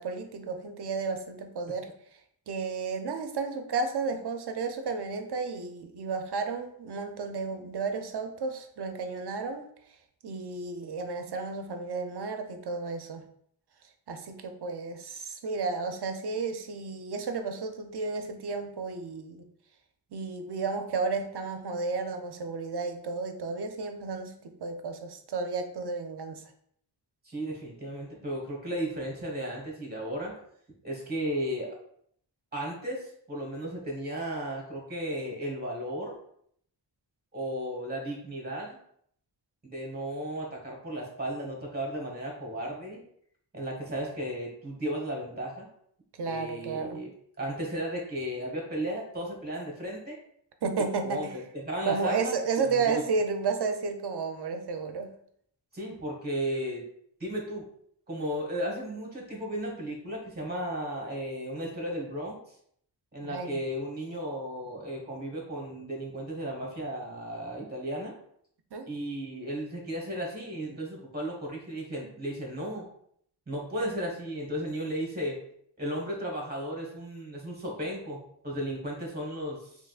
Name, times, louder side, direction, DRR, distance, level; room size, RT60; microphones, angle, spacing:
voice 1, 0.0-1.9 2.5-9.6 10.2-13.2 14.1-19.4 20.1-26.5 46.2-47.0 50.6-51.4 51.9-55.1 63.2-63.6 68.7-68.9, right 4 dB, 60° right, 6 dB, 0.5 m, -32 dB
voice 2, 27.2-30.4 30.8-31.8 32.5-36.2 37.3-38.8 39.6-43.0 43.5-45.7 46.3-47.1 47.4-50.2 51.0-51.3 51.5-52.3 52.6-53.0 55.7-56.9 57.2-57.7 58.1-62.4 63.1-68.1 68.9-72.9 73.5-75.4 75.8-79.8, right 1 dB, 20° right, -2 dB, 1.2 m, -34 dB
3.4 x 3.1 x 2.4 m, 0.67 s
wide cardioid pair, 90°, 44 cm